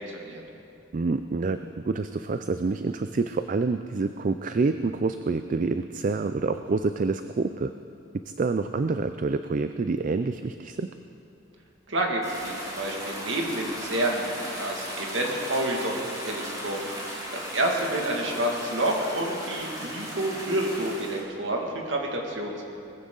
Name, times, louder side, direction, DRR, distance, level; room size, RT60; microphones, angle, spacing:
voice 1, 0.9-7.7 8.1-10.9, right 3 dB, 45° right, 9 dB, 0.4 m, -27 dB
voice 2, 11.9-22.6, right 1 dB, 80° right, 0 dB, 2.2 m, -29 dB
sound 1, 12.2-21.2, equal, 20° right, 3.0 m, -36 dB
20.0 x 15.0 x 3.9 m, 2.7 s
head